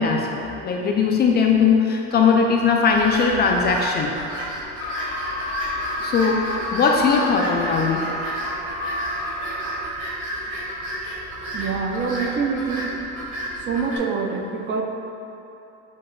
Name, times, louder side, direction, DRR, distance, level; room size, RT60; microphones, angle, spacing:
voice 1, 0.0-4.1 6.0-6.4 6.7-8.0, left 5 dB, 30° left, 1 dB, 0.4 m, -19 dB
sound 1, 2.9-14.0, equal, 60° right, 1.4 m, -32 dB
sound 2, 4.8-9.9, left 2 dB, 70° left, 0.7 m, -31 dB
voice 2, 11.5-12.9 13.7-14.8, right 5 dB, 35° right, 2 dB, 0.5 m, -25 dB
7.7 x 2.7 x 2.6 m, 2.9 s
supercardioid pair, 105°, 32 cm